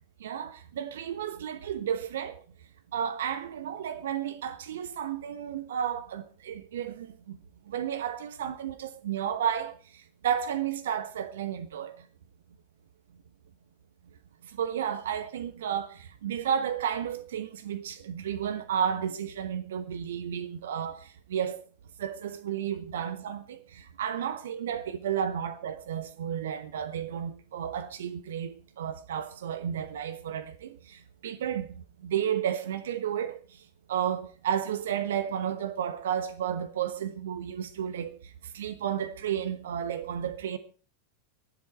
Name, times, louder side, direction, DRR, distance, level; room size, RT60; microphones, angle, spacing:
voice 1, 0.2-2.4 2.9-7.4 7.7-12.1 14.4-21.6 22.0-33.6 33.9-40.6, right 9 dB, 65° right, 1.1 m, -32 dB
24.0 x 8.1 x 4.5 m
figure-of-eight pair, 90°, 0 cm